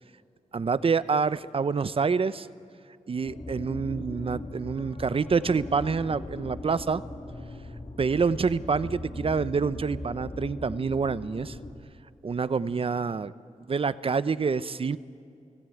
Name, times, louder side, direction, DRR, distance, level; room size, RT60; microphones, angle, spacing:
voice 1, 0.5-2.5 3.1-7.0 8.0-11.6 12.2-13.3 13.7-15.0, right 5 dB, 45° right, 16 dB, 0.6 m, -27 dB
sound 1, 3.2-11.7, left 2 dB, 50° left, 3.2 m, -39 dB
29.0 x 18.0 x 9.1 m, 2.4 s
wide cardioid pair, 135°, 13 cm